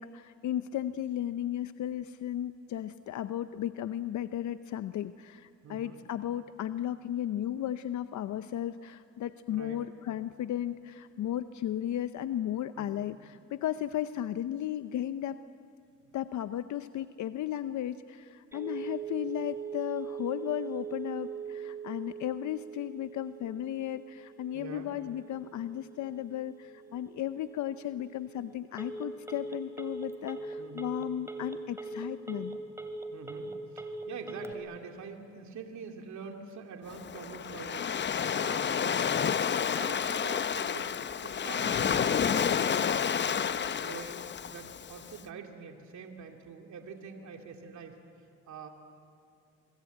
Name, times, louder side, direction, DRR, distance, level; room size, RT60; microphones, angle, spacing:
voice 1, 0.0-15.4 16.1-32.6, left 11 dB, 70° left, 12 dB, 0.7 m, -35 dB
voice 2, 5.6-6.0 9.5-9.8 12.7-13.0 24.5-24.9 30.6-30.9 33.1-43.1 43.5-44.2 44.5-48.0 48.5-48.7, right 5 dB, 70° right, 3 dB, 2.5 m, -45 dB
Telephone, 18.5-34.5, right 4 dB, 10° right, 2.8 m, -41 dB
Waves surf, 36.9-45.1, left 7 dB, 35° left, 0.7 m, -30 dB
25.5 x 23.0 x 9.1 m, 2.4 s
cardioid pair, 90°, 30 cm